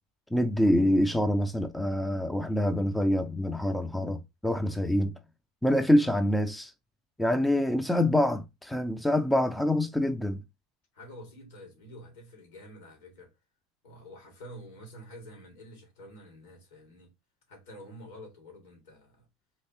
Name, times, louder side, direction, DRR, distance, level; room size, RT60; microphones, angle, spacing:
voice 1, 0.3-5.1 5.6-6.7 7.2-10.4, left 1 dB, 5° left, 0.5 m, -26 dB
voice 2, 10.9-13.4 13.8-17.1 17.5-19.3, equal, 70° left, 2.5 m, -48 dB
4.2 x 3.2 x 2.9 m
figure-of-eight pair, 75°, 0 cm